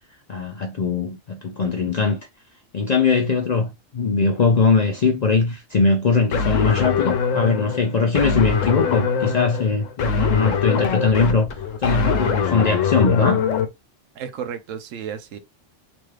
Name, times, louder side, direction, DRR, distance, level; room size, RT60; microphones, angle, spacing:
voice 1, 0.3-2.2 2.7-13.5, left 4 dB, 60° left, 0.4 m, -21 dB
sound 1, 6.3-13.7, left 6 dB, 85° left, 1.0 m, -23 dB
voice 2, 14.1-15.4, right 8 dB, 90° right, 1.0 m, -32 dB
3.0 x 2.3 x 3.2 m
omnidirectional pair, 1.3 m